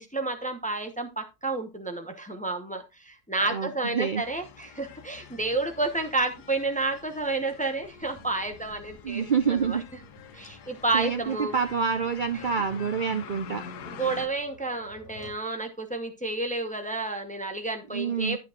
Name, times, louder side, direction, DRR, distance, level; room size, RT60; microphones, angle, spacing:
voice 1, 0.0-9.2 9.6-9.8 10.3-11.5 13.9-18.4, right 3 dB, 10° left, 5 dB, 0.6 m, -30 dB
voice 2, 3.5-4.2 9.0-9.8 10.9-13.6 17.9-18.4, right 6 dB, 75° right, 7 dB, 0.4 m, -27 dB
sound 1, 4.2-14.3, left 7 dB, 85° left, 1.4 m, -46 dB
Tap, 8.0-15.5, equal, 10° right, 2.4 m, -53 dB
11.0 x 7.4 x 2.5 m, 0.26 s
omnidirectional pair, 1.7 m